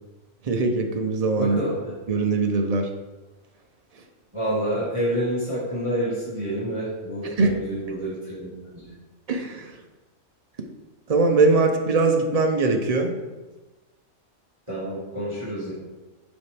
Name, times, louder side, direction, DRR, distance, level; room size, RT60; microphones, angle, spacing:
voice 1, 0.4-1.6 2.1-2.9 7.4-7.5 9.3-9.8 11.1-13.1, right 3 dB, 45° right, 3 dB, 0.5 m, -21 dB
voice 2, 1.4-1.9 4.3-8.9 14.7-15.7, right 1 dB, 20° right, -10 dB, 2.0 m, -28 dB
7.1 x 5.1 x 3.4 m, 1.2 s
omnidirectional pair, 1.5 m